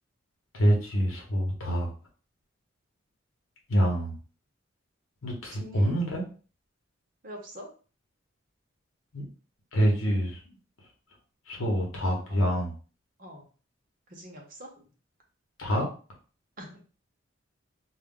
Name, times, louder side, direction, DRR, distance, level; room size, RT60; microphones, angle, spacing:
voice 1, 0.5-1.9 3.7-4.1 5.2-6.2 9.1-9.2 9.7-10.4 11.5-12.7 15.6-15.8, equal, 85° left, -1 dB, 0.8 m, -26 dB
voice 2, 5.6-6.0 7.2-7.7 12.3-12.6 13.2-13.5 14.1-14.7 16.6-16.8, equal, 40° right, 1 dB, 0.7 m, -44 dB
2.3 x 2.1 x 3.6 m, 0.38 s
head